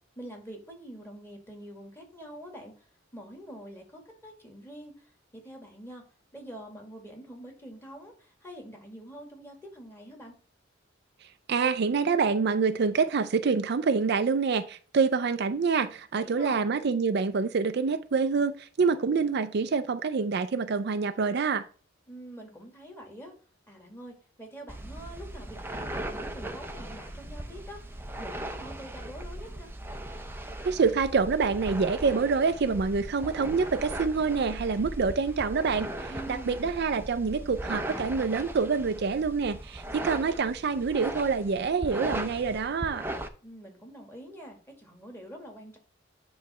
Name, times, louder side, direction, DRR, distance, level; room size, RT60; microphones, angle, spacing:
voice 1, 0.2-2.7 3.1-5.1 5.4-6.0 6.3-10.3 16.1-16.6 22.1-23.3 23.7-29.7 36.1-36.7 43.4-45.8, equal, 10° left, 1 dB, 2.0 m, -45 dB
voice 2, 11.5-21.6 30.6-35.9 36.3-43.0, right 5 dB, 55° right, 11 dB, 0.4 m, -26 dB
sound 1, 24.7-43.3, right 1 dB, 10° right, 0.6 m, -38 dB
9.6 x 3.2 x 5.5 m, 0.40 s
head